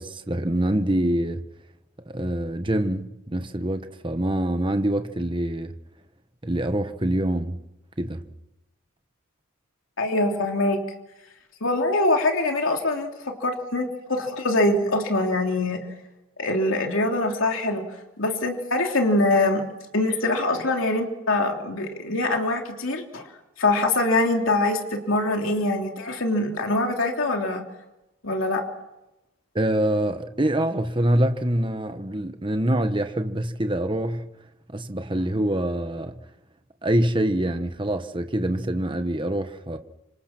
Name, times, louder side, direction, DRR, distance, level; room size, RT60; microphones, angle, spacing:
voice 1, 0.0-1.4 2.1-5.7 6.4-7.6 8.0-8.2 29.5-34.3 34.7-36.2 36.8-39.8, right 1 dB, 25° right, 1.2 m, -25 dB
voice 2, 10.0-10.8 11.6-15.8 16.4-19.6 19.9-23.3 23.6-27.6 28.2-28.6, left 2 dB, 70° left, 3.3 m, -24 dB
28.0 x 25.5 x 6.1 m
head